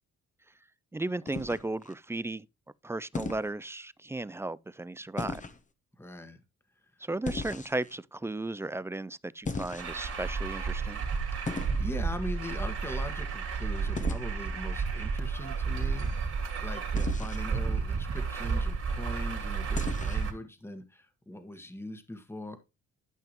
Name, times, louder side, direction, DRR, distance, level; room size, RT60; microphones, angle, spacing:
voice 1, 0.9-2.5 2.8-5.4 7.0-11.0, right 2 dB, 10° right, 0.3 m, -35 dB
sound 1, 1.3-1.9 3.1-3.5 5.2-5.6 7.2-8.0 9.4-10.2 11.4-11.8 14.0-14.2 16.9-17.5 19.7-20.3, left 3 dB, 25° left, 1.0 m, -36 dB
voice 2, 6.0-6.4 11.3-22.6, left 1 dB, 10° left, 1.4 m, -41 dB
Truck, 9.8-20.3, right 5 dB, 50° right, 2.7 m, -31 dB
12.0 x 5.8 x 3.0 m
cardioid pair, 90°, 30 cm